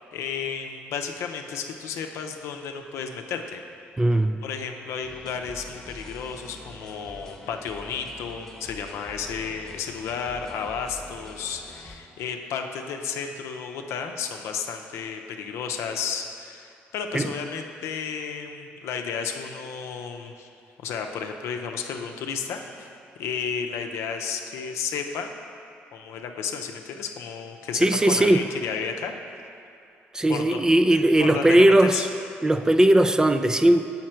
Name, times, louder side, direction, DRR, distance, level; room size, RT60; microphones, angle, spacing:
voice 1, 0.1-3.6 4.4-20.5 20.8-22.9 23.2-25.3 25.9-29.1 30.3-30.6 30.9-32.1, left 6 dB, 75° left, 4 dB, 0.6 m, -32 dB
voice 2, 4.0-4.4 17.1-17.3 27.7-28.4 30.1-32.1 32.4-33.8, right 1 dB, 15° right, 9 dB, 0.3 m, -18 dB
sound 1, 5.0-12.0, left 1 dB, 10° left, 1.0 m, -45 dB
7.4 x 5.7 x 4.4 m, 2.5 s
supercardioid pair, 70°, 5 cm